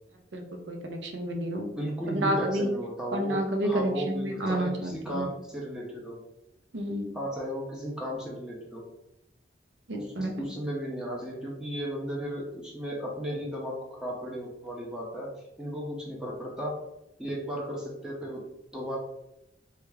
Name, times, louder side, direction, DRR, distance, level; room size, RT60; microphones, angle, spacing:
voice 1, 0.3-1.7 2.1-2.7 3.1-5.3 6.7-7.2 9.9-10.5, right 1 dB, 80° right, 3 dB, 0.6 m, -30 dB
voice 2, 1.7-6.2 7.1-8.8 9.9-15.3 15.6-16.8 17.2-18.4 18.7-19.0, equal, 5° right, -3 dB, 0.6 m, -35 dB
3.3 x 2.3 x 3.3 m, 0.88 s
head